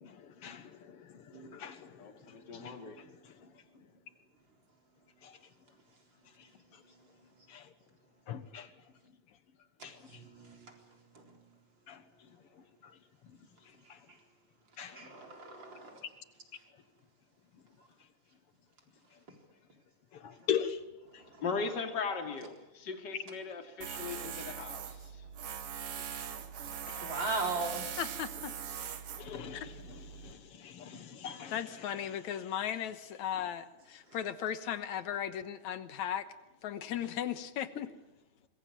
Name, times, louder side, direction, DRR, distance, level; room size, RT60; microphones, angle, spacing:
voice 1, 0.4-1.0 1.5-1.9 2.5-2.6 7.5-7.6 8.3-8.7 9.8-9.9 11.9-12.0 14.8-15.0 20.2-20.8 29.2-29.6 30.2-30.4 30.6-31.5, left 9 dB, 55° left, 2.0 m, -38 dB
voice 2, 2.0-3.0 21.4-25.2 26.9-27.1, left 5 dB, 35° left, 3.0 m, -39 dB
voice 3, 10.1-10.6 11.1-11.2 14.9-16.0 21.2-21.4 27.0-27.9, right 3 dB, 35° right, 4.6 m, -38 dB
Tools, 23.8-30.3, right 8 dB, 55° right, 2.1 m, -41 dB
voice 4, 28.0-28.5 29.5-29.7 31.5-36.3 36.6-37.9, left 10 dB, 70° left, 2.4 m, -37 dB
26.0 x 21.5 x 8.8 m
omnidirectional pair, 3.5 m